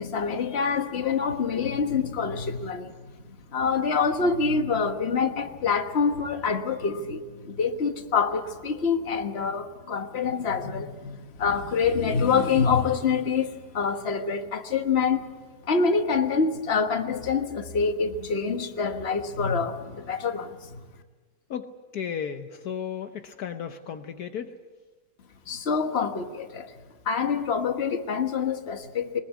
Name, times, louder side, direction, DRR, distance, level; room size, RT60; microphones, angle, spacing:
voice 1, 0.0-2.9 3.5-15.3 15.6-20.8 25.5-26.7 27.0-29.2, left 5 dB, 40° left, 6 dB, 1.5 m, -26 dB
voice 2, 21.9-24.5, left 8 dB, 70° left, 7 dB, 1.4 m, -34 dB
21.5 x 20.5 x 8.3 m, 1.4 s
omnidirectional pair, 1.7 m